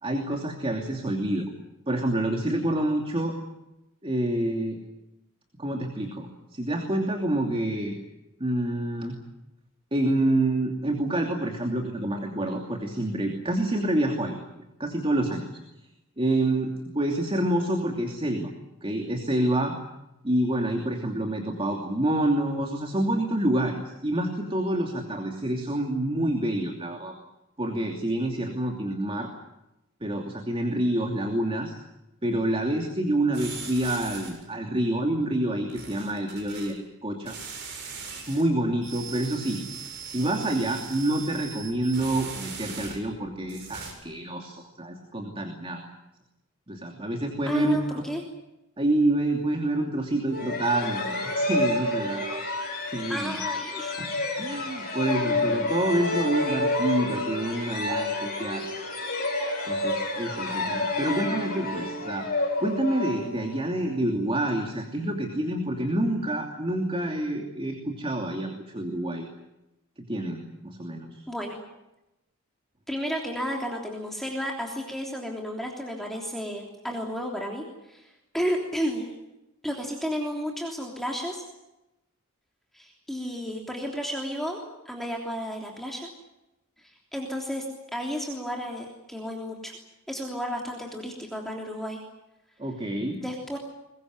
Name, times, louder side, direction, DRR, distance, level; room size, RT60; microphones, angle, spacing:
voice 1, 0.0-1.5 1.9-3.3 4.0-4.8 5.6-8.0 8.4-9.2 9.9-14.4 14.8-15.4 16.2-18.5 18.8-19.7 20.2-27.1 27.6-29.3 30.0-31.7 32.2-37.4 38.3-39.6 40.0-45.8 46.7-48.0 48.8-52.4 52.9-53.4 54.0-54.1 54.4-58.6 59.7-69.3 70.0-71.2 92.6-93.2, right 1 dB, 25° right, 2 dB, 2.8 m, -27 dB
sound 1, 33.3-34.5 35.7-36.7 37.3-38.4 38.8-43.2 43.5-43.9, right 5 dB, 50° right, 7.4 m, -40 dB
voice 2, 47.5-48.2 53.1-53.9 54.4-54.6 71.3-71.6 72.9-79.1 79.6-81.4 82.7-84.6 84.8-86.1 86.8-87.6 87.9-89.7 90.1-92.0 93.2-93.6, equal, ahead, 0 dB, 3.3 m, -32 dB
sound 2, 50.3-63.8, left 2 dB, 45° left, 8.0 m, -29 dB
23.0 x 21.0 x 9.5 m, 0.93 s
head